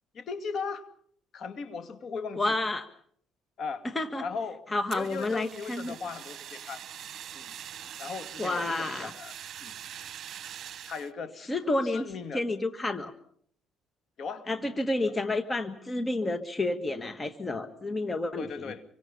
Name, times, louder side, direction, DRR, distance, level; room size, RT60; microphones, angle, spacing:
voice 1, 0.1-0.9 1.3-2.6 3.6-3.9 4.2-4.6 4.9-6.8 7.3-7.5 8.0-9.3 9.6-9.8 10.9-11.5 11.8-12.4 14.2-14.5 18.4-18.8, left 5 dB, 50° left, 2.5 m, -37 dB
voice 2, 2.3-2.9 3.9-4.2 4.7-6.0 8.4-9.1 11.5-13.1 14.5-18.7, left 2 dB, 20° left, 1.7 m, -30 dB
Fire, 4.9-11.1, right 10 dB, 55° right, 1.5 m, -43 dB
27.5 x 24.5 x 5.5 m
cardioid pair, 115°, 0 cm